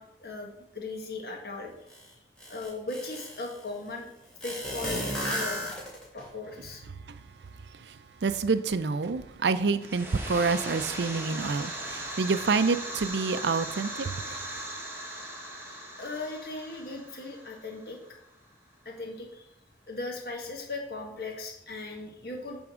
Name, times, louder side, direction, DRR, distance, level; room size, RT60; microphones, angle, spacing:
voice 1, 0.0-1.7 2.0-2.1 2.5-4.1 4.4-5.0 5.3-5.7 6.1-6.8 16.0-18.0 18.8-19.4 19.9-22.6, left 3 dB, 60° left, 1.5 m, -38 dB
sound 1, 1.9-2.0 2.4-3.5 4.4-6.2, equal, 5° left, 2.4 m, -33 dB
voice 2, 8.2-14.1, right 4 dB, 80° right, 0.5 m, -27 dB
sound 2, 9.8-18.3, right 1 dB, 15° right, 1.0 m, -39 dB
8.6 x 3.6 x 6.2 m
head